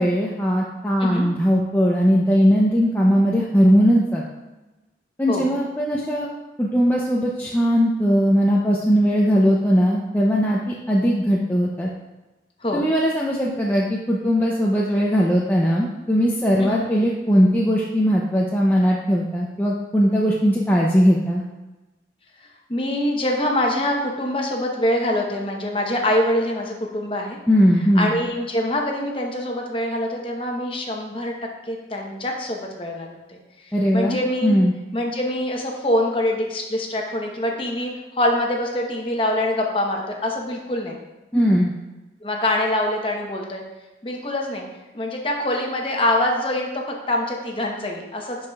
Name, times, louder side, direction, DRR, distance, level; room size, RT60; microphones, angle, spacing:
voice 1, 0.0-4.2 5.2-6.3 6.6-11.9 12.7-21.4 27.5-28.1 33.7-34.2 34.4-34.7 41.3-41.7, equal, 10° left, -4 dB, 0.5 m, -19 dB
voice 2, 22.7-27.4 27.9-31.3 31.7-33.4 33.7-34.5 34.9-41.0 42.2-43.6 44.0-44.6 44.9-48.4, left 1 dB, 30° left, 1 dB, 0.9 m, -24 dB
10.5 x 4.8 x 2.3 m, 1.1 s
head